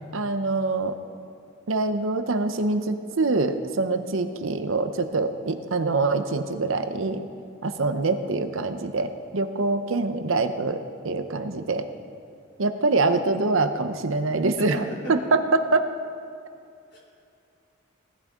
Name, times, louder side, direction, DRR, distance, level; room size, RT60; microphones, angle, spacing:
voice 1, 0.1-1.0 1.7-7.3 7.6-11.9 12.6-15.9, right 3 dB, 75° right, 9 dB, 0.8 m, -25 dB
voice 2, 14.6-15.1 16.9-17.0, equal, 55° left, -3 dB, 4.2 m, -36 dB
18.0 x 13.0 x 3.7 m, 2.4 s
head